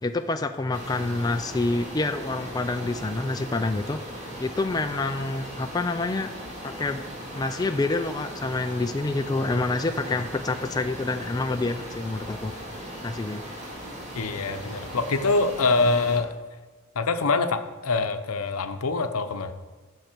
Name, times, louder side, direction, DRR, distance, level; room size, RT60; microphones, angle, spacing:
voice 1, 0.0-4.0 4.4-6.3 6.6-7.0 7.3-12.5 13.0-13.4, left 3 dB, 15° left, 6 dB, 0.3 m, -27 dB
sound 1, 0.7-16.2, equal, 30° right, 2.1 m, -38 dB
voice 2, 14.1-16.4 16.9-19.5, left 3 dB, 75° left, 8 dB, 0.8 m, -24 dB
13.5 x 6.5 x 4.5 m, 1.3 s
head